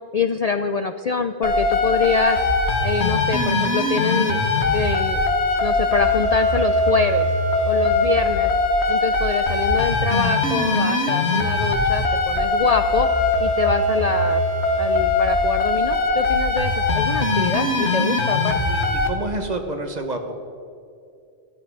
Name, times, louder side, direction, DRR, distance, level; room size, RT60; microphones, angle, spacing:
voice 1, 0.1-2.4 2.8-4.4 4.7-5.2 5.6-7.3 7.7-8.5 8.9-13.1 13.4-14.4 14.8-18.6, left 5 dB, 50° left, 9 dB, 0.5 m, -25 dB
sound 1, 1.4-19.1, left 2 dB, 80° left, 1.7 m, -21 dB
voice 2, 19.0-20.4, right 2 dB, 40° right, 5 dB, 1.4 m, -28 dB
14.0 x 12.5 x 4.8 m, 2.5 s
omnidirectional pair, 1.1 m